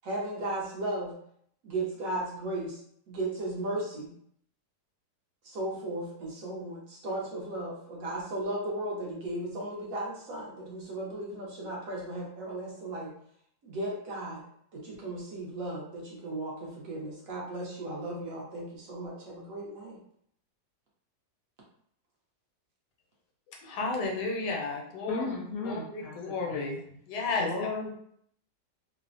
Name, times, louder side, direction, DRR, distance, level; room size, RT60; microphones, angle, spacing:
voice 1, 0.0-1.2 1.6-2.8 3.1-4.1 5.4-13.1 13.6-14.4 14.7-20.0, right 1 dB, 65° right, -3 dB, 1.0 m, -36 dB
voice 2, 23.6-25.2 25.6-26.8 27.1-27.5, left 3 dB, 85° left, 0 dB, 1.3 m, -32 dB
voice 3, 25.1-26.8 27.4-28.0, left 3 dB, 70° left, -3 dB, 0.8 m, -35 dB
3.2 x 2.0 x 2.5 m, 0.66 s
omnidirectional pair, 1.8 m